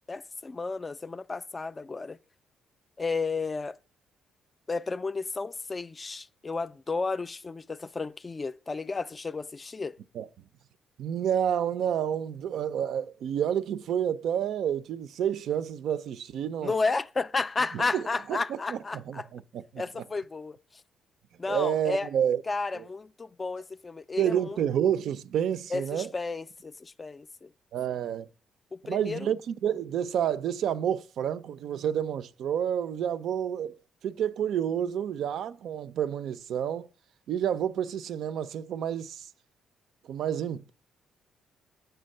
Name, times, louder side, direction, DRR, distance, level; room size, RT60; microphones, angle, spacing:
voice 1, 0.1-2.2 3.0-3.8 4.7-10.0 16.6-19.3 19.8-20.8 21.4-22.1 22.5-24.6 25.7-27.5 28.7-29.3, left 3 dB, 30° left, 0.3 m, -32 dB
voice 2, 11.0-16.7 17.7-18.0 18.3-19.8 21.5-22.4 22.7-22.8 24.2-26.1 27.7-28.3 28.8-33.8 34.0-36.9 37.3-39.3 40.0-40.7, right 9 dB, 75° right, 0.4 m, -29 dB
8.0 x 4.4 x 6.5 m
cardioid pair, 90°, 0 cm